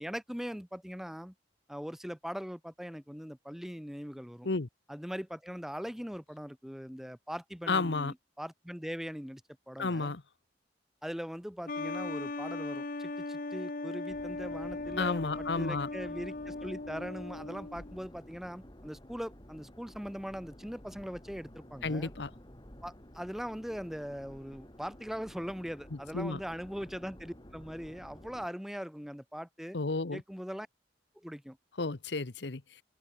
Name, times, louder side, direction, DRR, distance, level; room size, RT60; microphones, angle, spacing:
voice 1, 0.0-1.3 1.7-4.5 4.9-9.4 9.7-10.1 11.0-22.1 22.8-29.8 30.1-30.7 31.2-31.6, equal, ahead, 1.1 m, -41 dB
voice 2, 7.7-8.1 9.8-10.2 15.0-15.9 21.8-22.3 26.1-26.4 29.7-30.2 31.8-32.6, left 3 dB, 70° left, 1.0 m, -32 dB
sound 1, 11.7-18.0, left 3 dB, 50° left, 1.0 m, -38 dB
sound 2, 14.1-28.5, equal, 25° left, 4.8 m, -52 dB
open air
head